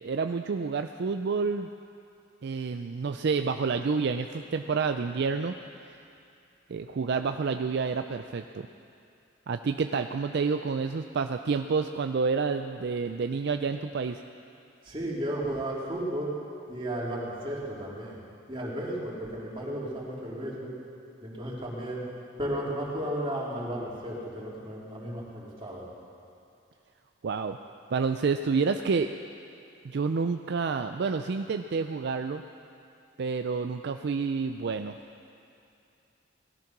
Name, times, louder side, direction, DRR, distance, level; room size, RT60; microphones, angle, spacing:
voice 1, 0.0-1.7 2.4-5.6 5.8-6.0 6.7-8.7 9.5-14.2 27.2-27.6 27.9-29.1 29.8-32.4 33.2-35.0, right 5 dB, 60° right, 7 dB, 0.4 m, -29 dB
voice 2, 14.8-16.3 16.7-18.2 18.5-20.7 21.2-22.1 22.4-25.8, right 1 dB, 25° right, -5 dB, 3.2 m, -34 dB
18.0 x 13.0 x 6.0 m, 2.6 s
head